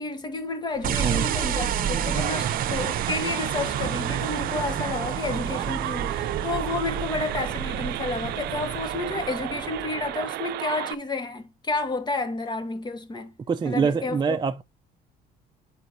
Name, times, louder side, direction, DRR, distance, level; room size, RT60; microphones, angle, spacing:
voice 1, 0.0-13.3 13.6-14.4, left 3 dB, 25° left, 1.6 m, -31 dB
sound 1, 0.7-9.3, left 5 dB, 50° left, 1.9 m, -48 dB
sound 2, 0.8-10.2, right 9 dB, 55° right, 0.9 m, -30 dB
sound 3, 2.2-10.9, right 15 dB, 75° right, 0.5 m, -33 dB
voice 2, 13.5-14.6, right 6 dB, 25° right, 0.6 m, -25 dB
9.4 x 5.2 x 2.7 m
cardioid pair, 110°, 17 cm